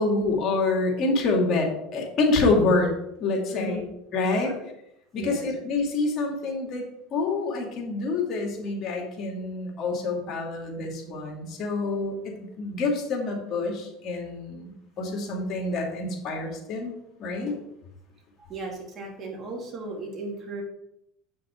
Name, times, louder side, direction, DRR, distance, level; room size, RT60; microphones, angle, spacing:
voice 1, 0.0-2.9 3.2-3.8 4.1-4.5 5.1-16.9 17.2-17.6, left 3 dB, 45° left, 1 dB, 2.5 m, -27 dB
voice 2, 5.2-5.5 18.4-20.6, right 2 dB, 35° right, -1 dB, 2.9 m, -36 dB
8.2 x 6.3 x 4.5 m, 0.81 s
supercardioid pair, 110°, 0 cm